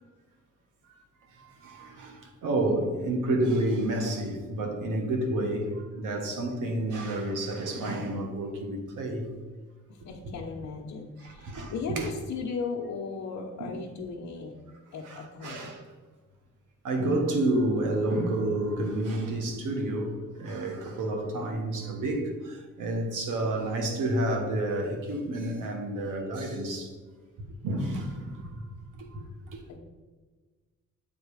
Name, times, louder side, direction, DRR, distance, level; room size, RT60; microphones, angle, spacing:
voice 1, 1.3-9.3 11.2-12.1 13.6-13.7 15.0-15.8 16.8-26.9 27.6-28.7 28.9-29.6, right 1 dB, 75° right, 1.5 m, -30 dB
voice 2, 9.9-14.5 14.9-15.7 29.7-29.8, left 5 dB, 60° left, 0.9 m, -37 dB
7.7 x 4.0 x 4.9 m
cardioid pair, 115°, 31 cm